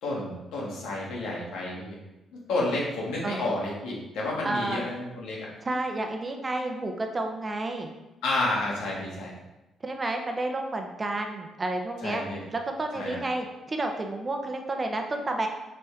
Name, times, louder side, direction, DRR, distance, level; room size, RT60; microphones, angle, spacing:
voice 1, 0.0-2.0 2.5-5.5 8.2-9.3 12.0-12.4 12.9-13.2, left 2 dB, 90° left, -4 dB, 2.2 m, -30 dB
voice 2, 4.4-4.9 5.6-7.9 9.8-12.2 12.5-15.5, right 2 dB, 30° right, 4 dB, 0.9 m, -30 dB
7.7 x 4.2 x 3.6 m, 0.99 s
cardioid pair, 90°, 0 cm